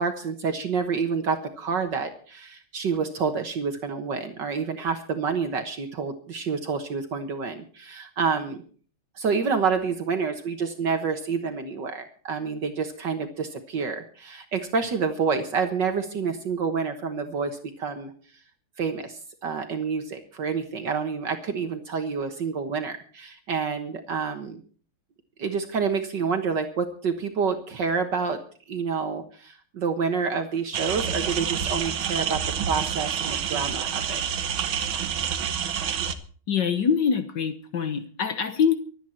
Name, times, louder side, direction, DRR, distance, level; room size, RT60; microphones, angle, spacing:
voice 1, 0.0-8.6 9.2-18.1 18.8-24.6 25.4-28.4 28.7-34.2, right 5 dB, 60° right, 7 dB, 1.9 m, -28 dB
sound 1, 30.7-36.1, right 8 dB, 75° right, 1.9 m, -28 dB
voice 2, 36.5-38.8, left 7 dB, 60° left, 9 dB, 1.7 m, -24 dB
24.5 x 9.2 x 4.4 m, 0.42 s
omnidirectional pair, 2.2 m